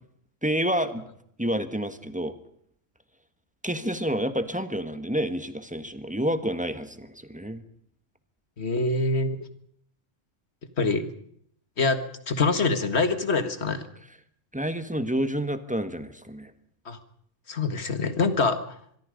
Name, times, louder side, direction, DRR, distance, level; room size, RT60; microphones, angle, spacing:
voice 1, 0.4-1.0 1.4-2.3 3.6-7.6 14.5-16.5, equal, 5° right, 10 dB, 1.5 m, -29 dB
voice 2, 8.6-9.4 10.8-11.0 11.8-12.0 12.3-13.9 16.9-17.0 17.5-18.8, left 3 dB, 55° left, 10 dB, 2.0 m, -25 dB
24.5 x 22.0 x 5.3 m, 0.67 s
omnidirectional pair, 1.3 m